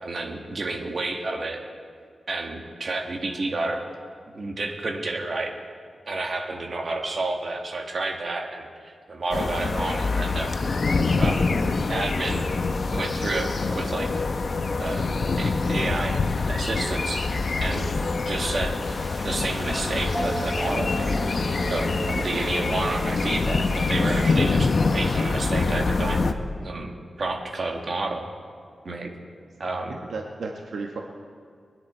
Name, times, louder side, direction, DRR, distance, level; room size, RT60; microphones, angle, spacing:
voice 1, 0.0-1.6 2.3-3.8 4.3-5.5 6.1-8.7 9.1-10.6 11.2-11.6 11.9-12.4 12.9-14.1 14.8-15.1 15.4-17.9 18.3-18.8 19.2-21.2 21.7-26.3 26.6-28.3 28.8-29.1 29.6-30.0, right 2 dB, 55° right, 2 dB, 1.8 m, -30 dB
sound 1, 9.3-26.3, left 3 dB, 55° left, 0.8 m, -25 dB
sound 2, 18.8-24.3, right 2 dB, 35° right, 1.5 m, -45 dB
sound 3, 19.6-24.7 25.1-26.2, equal, 5° left, 4.2 m, -34 dB
voice 2, 30.1-31.0, right 4 dB, 85° right, 1 dB, 1.1 m, -34 dB
24.0 x 10.0 x 4.4 m, 2.1 s
wide cardioid pair, 95°, 0 cm